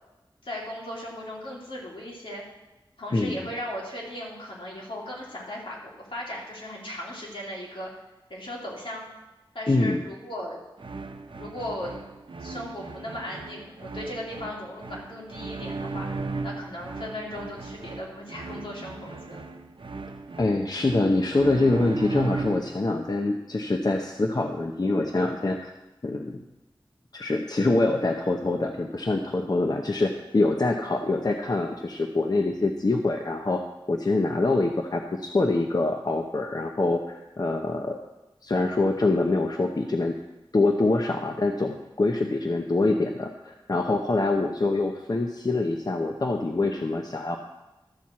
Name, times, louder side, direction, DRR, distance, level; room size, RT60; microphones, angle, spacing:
voice 1, 0.4-2.4 3.0-7.9 8.3-9.0 9.5-10.6 11.3-11.9 12.4-16.1 16.4-19.5, left 1 dB, 80° left, -4 dB, 2.9 m, -37 dB
voice 2, 9.7-10.0 20.4-25.7 26.0-26.4 27.1-33.6 33.9-38.0 38.4-40.2 40.5-47.4, left 2 dB, 50° left, 3 dB, 0.7 m, -25 dB
sound 1, 10.8-22.8, right 3 dB, 70° right, 0.7 m, -37 dB
12.5 x 4.4 x 7.4 m, 1.1 s
wide cardioid pair, 70°, 9 cm